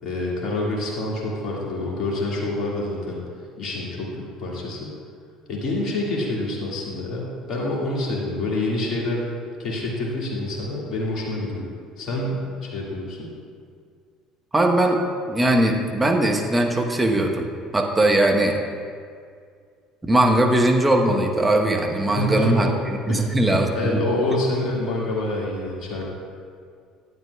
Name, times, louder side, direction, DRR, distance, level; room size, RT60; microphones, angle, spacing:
voice 1, 0.0-3.2 3.6-4.9 5.5-9.2 9.6-11.7 12.0-13.3 22.1-22.7 23.1-23.3 23.7-26.1, left 2 dB, 50° left, -3 dB, 2.1 m, -27 dB
voice 2, 14.5-15.0 15.3-17.5 17.7-18.5 20.0-24.0, right 1 dB, 15° right, 2 dB, 1.0 m, -20 dB
11.0 x 9.1 x 2.3 m, 2.2 s
hypercardioid pair, 60°, 0 cm